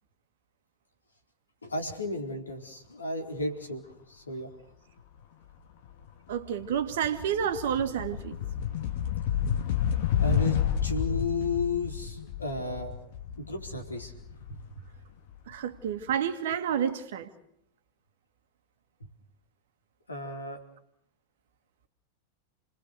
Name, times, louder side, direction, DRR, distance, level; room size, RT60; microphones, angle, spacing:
voice 1, 1.6-4.5 10.2-12.9 13.4-14.1 14.5-14.6 20.1-20.6, left 2 dB, 75° left, 4.2 m, -33 dB
sound 1, 5.8-6.1 6.4-15.3, left 9 dB, 50° left, 2.7 m, -30 dB
voice 2, 6.3-8.4 15.5-17.3, right 8 dB, 55° right, 2.1 m, -29 dB
30.0 x 21.0 x 6.7 m
figure-of-eight pair, 90°, 0 cm